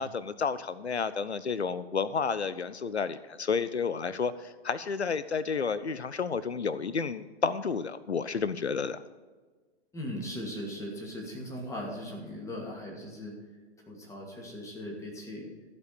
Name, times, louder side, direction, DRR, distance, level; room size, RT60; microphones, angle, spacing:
voice 1, 0.0-9.0, left 5 dB, 85° left, 15 dB, 0.6 m, -31 dB
voice 2, 9.9-13.4 13.9-15.5, equal, 10° left, -1 dB, 2.5 m, -39 dB
14.0 x 5.3 x 6.8 m, 1.4 s
figure-of-eight pair, 115°, 32 cm